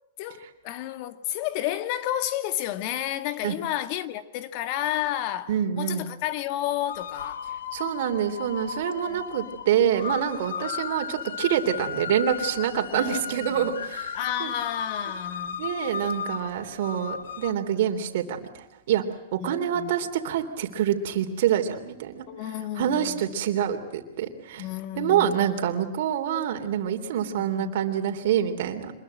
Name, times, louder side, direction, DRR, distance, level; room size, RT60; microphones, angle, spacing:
voice 1, 0.2-7.4 9.0-9.2 12.9-13.8 14.1-15.7 19.4-19.9 22.3-23.2 24.6-25.5 27.4-27.8, left 13 dB, 45° left, 1.9 m, -31 dB
voice 2, 5.5-6.1 7.7-14.5 15.6-19.0 19.3-22.2 22.7-24.6 24.9-28.9, right 9 dB, 65° right, 3.3 m, -26 dB
sound 1, 6.9-17.5, left 7 dB, 85° left, 1.2 m, -35 dB
26.5 x 22.0 x 7.8 m
hypercardioid pair, 140°, 0 cm